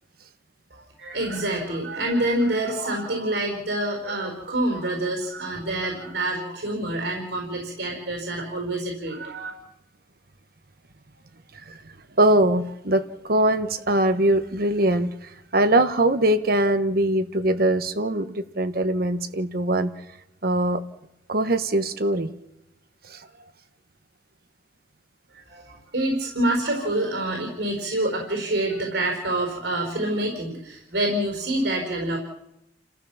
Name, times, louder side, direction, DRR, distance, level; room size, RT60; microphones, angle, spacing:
voice 1, 0.7-9.5 25.3-32.2, right 1 dB, 75° right, 1 dB, 4.7 m, -27 dB
voice 2, 12.2-15.1 15.5-19.9 20.4-20.8 21.3-22.3 23.1-23.2, right 1 dB, 55° right, 10 dB, 1.2 m, -22 dB
29.5 x 14.5 x 7.1 m, 0.87 s
head